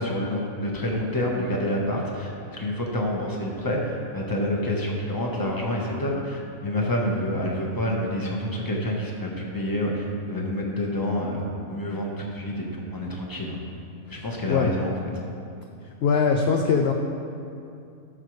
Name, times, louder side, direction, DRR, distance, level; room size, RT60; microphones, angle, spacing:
voice 1, 0.0-13.6 14.1-14.9, left 1 dB, 15° left, -2 dB, 1.1 m, -28 dB
voice 2, 14.1-14.7 16.0-16.9, left 5 dB, 60° left, 2 dB, 0.7 m, -22 dB
14.5 x 6.6 x 3.2 m, 2.5 s
omnidirectional pair, 1.4 m